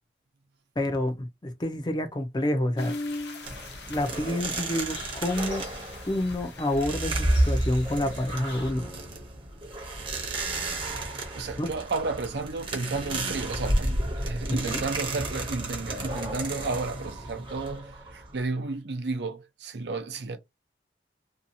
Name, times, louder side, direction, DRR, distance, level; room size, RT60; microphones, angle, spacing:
voice 1, 0.8-3.0 3.9-5.6 6.1-8.9 11.6-11.7 14.6-14.8, left 1 dB, 25° left, 0.5 m, -28 dB
sound 1, 2.8-8.7, left 2 dB, 65° left, 0.7 m, -41 dB
sound 2, 3.4-18.4, right 1 dB, 30° right, 0.8 m, -31 dB
voice 2, 11.3-20.4, right 3 dB, 70° right, 0.6 m, -32 dB
2.7 x 2.3 x 2.6 m
head